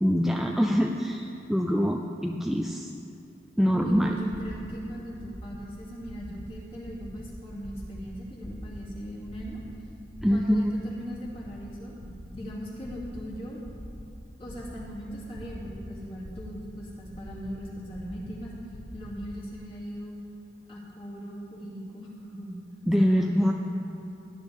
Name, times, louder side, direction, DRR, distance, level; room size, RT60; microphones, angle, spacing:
voice 1, 0.0-2.9 3.6-4.1 10.2-10.8 22.9-23.5, equal, ahead, 1 dB, 0.4 m, -24 dB
sound 1, 3.6-19.5, equal, 60° left, 1.3 m, -45 dB
voice 2, 3.7-9.6 10.3-13.6 14.4-18.5 18.9-20.1 20.7-22.6 23.0-23.5, equal, 30° left, -6 dB, 2.7 m, -39 dB
17.5 x 10.5 x 3.6 m, 2.9 s
head